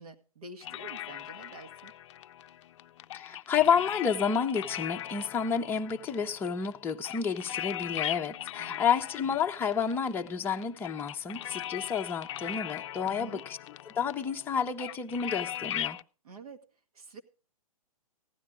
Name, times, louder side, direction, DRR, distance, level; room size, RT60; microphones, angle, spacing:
voice 1, 0.0-1.9 8.6-8.9 13.1-13.4 16.2-16.6 16.9-17.2, right 3 dB, 75° right, 2.0 m, -47 dB
sound 1, 0.6-16.0, left 12 dB, 50° left, 0.5 m, -40 dB
voice 2, 3.1-13.6 13.9-16.0, left 7 dB, 10° left, 0.7 m, -30 dB
15.5 x 11.0 x 3.8 m
hypercardioid pair, 130°, 19 cm